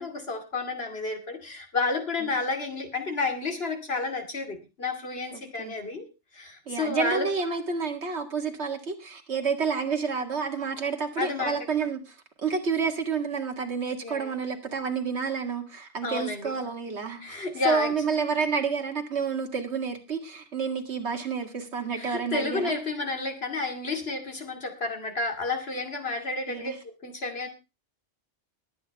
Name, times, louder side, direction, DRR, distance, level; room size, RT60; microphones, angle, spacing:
voice 1, 0.0-6.1 6.3-7.3 11.2-11.5 14.0-14.3 16.0-16.5 17.2-17.9 21.9-27.5, left 3 dB, 60° left, 5 dB, 2.6 m, -31 dB
voice 2, 6.7-12.1 12.4-22.7 26.5-26.8, right 5 dB, 70° right, 4 dB, 2.2 m, -29 dB
21.0 x 8.6 x 3.4 m, 0.28 s
omnidirectional pair, 1.2 m